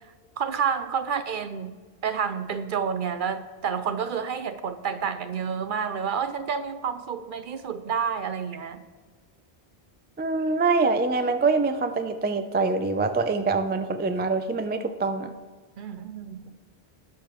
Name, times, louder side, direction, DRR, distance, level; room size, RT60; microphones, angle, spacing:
voice 1, 0.4-1.7 2.0-8.8 15.8-16.4, right 6 dB, 60° right, 11 dB, 0.6 m, -29 dB
voice 2, 10.2-15.3, right 3 dB, 15° right, 8 dB, 0.3 m, -24 dB
19.5 x 6.7 x 3.1 m, 1.4 s
omnidirectional pair, 1.1 m